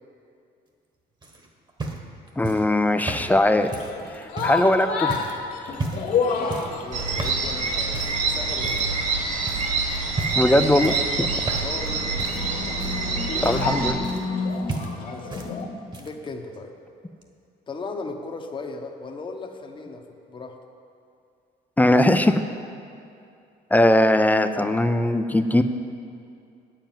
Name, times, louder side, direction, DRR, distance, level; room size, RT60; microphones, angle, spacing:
sound 1, 1.2-4.7 5.1-5.4 5.7-6.2 6.5-6.8 7.2-7.5 7.9-8.2 8.6-9.1 9.5-9.7 10.1-10.5 10.8-11.9 12.2-14.4 14.7-15.5 15.8-16.3 17.2-17.3, right 3 dB, 25° right, 1.3 m, -34 dB
voice 1, 2.4-3.7 4.1-5.1 10.4-11.3 13.4-14.1 21.8-22.4 23.7-25.6, left 1 dB, 10° left, 9 dB, 0.5 m, -20 dB
sound 2, 3.6-15.7, left 5 dB, 60° left, 1.9 m, -31 dB
voice 2, 6.3-8.9 11.6-12.0 14.9-15.6 16.0-16.7 17.7-20.6, left 3 dB, 30° left, 3 dB, 1.0 m, -37 dB
sound 3, 6.9-13.9, right 4 dB, 50° right, 1.8 m, -26 dB
8.9 x 7.5 x 9.0 m, 2.5 s
cardioid pair, 110°, 17 cm